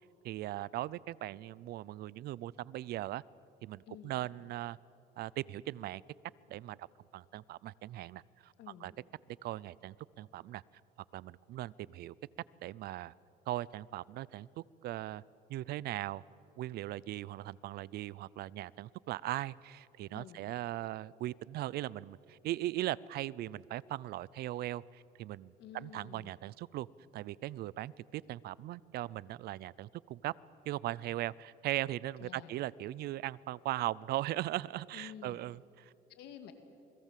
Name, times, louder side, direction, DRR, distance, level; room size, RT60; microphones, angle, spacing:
voice 1, 0.2-3.2 3.6-4.8 5.2-6.0 6.5-6.9 7.1-8.5 8.8-8.9 9.4-10.6 11.1-12.1 12.6-13.1 13.5-14.5 14.8-15.2 15.5-16.2 16.6-26.9 27.1-30.3 30.7-35.9, right 15 dB, 70° right, 22 dB, 0.6 m, -39 dB
voice 2, 3.9-4.2 8.6-8.9 20.1-20.4 25.6-26.3 32.2-32.5 34.9-35.4 36.1-36.5, left 10 dB, 85° left, 7 dB, 2.3 m, -50 dB
28.0 x 21.5 x 7.5 m, 2.7 s
cardioid pair, 110°, 17 cm